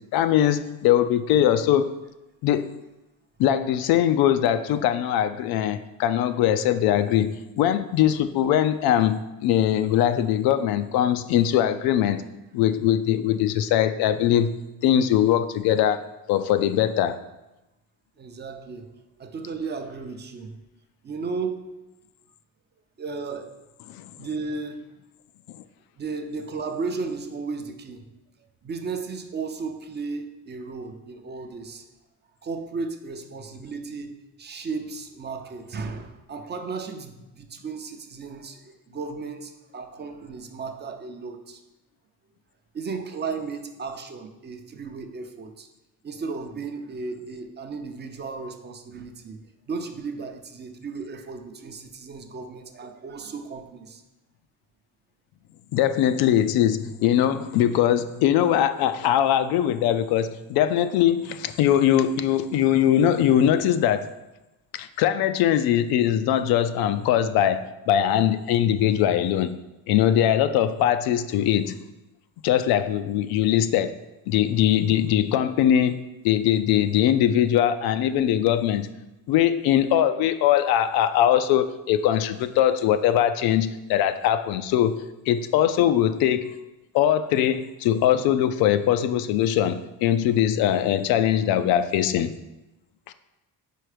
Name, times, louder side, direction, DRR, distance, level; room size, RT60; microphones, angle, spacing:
voice 1, 0.1-1.9 2.4-2.7 3.4-12.2 12.5-14.5 14.8-17.2 23.9-24.1 55.7-64.1 64.7-69.6 69.9-71.7 72.4-73.9 74.3-78.9 79.3-85.0 85.3-86.5 86.9-92.3 93.1-93.2, left 10 dB, 80° left, 11 dB, 0.5 m, -21 dB
voice 2, 18.2-18.9 19.2-20.6 21.0-21.7 23.0-23.6 24.2-24.9 26.0-28.0 28.6-31.8 32.4-41.6 42.7-45.7 46.0-54.0, right 4 dB, 30° right, 6 dB, 0.5 m, -34 dB
4.6 x 4.5 x 4.9 m, 1.0 s
cardioid pair, 125°, 36 cm